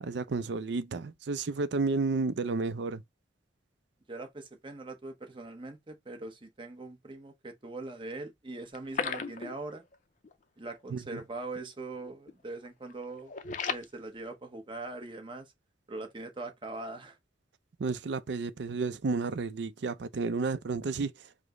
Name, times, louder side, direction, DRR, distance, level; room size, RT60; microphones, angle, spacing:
voice 1, 0.0-3.0 10.9-11.2 17.8-21.1, right 4 dB, 65° right, 0.4 m, -31 dB
voice 2, 4.1-9.8 10.6-13.3 13.7-15.5 15.9-17.2, right 2 dB, 25° right, 0.8 m, -41 dB
sound 1, 8.7-10.0 10.2-10.4 10.7-10.8 11.4-11.7 11.9-12.3 12.6-13.9, left 6 dB, 40° left, 0.4 m, -36 dB
5.0 x 2.0 x 3.6 m
head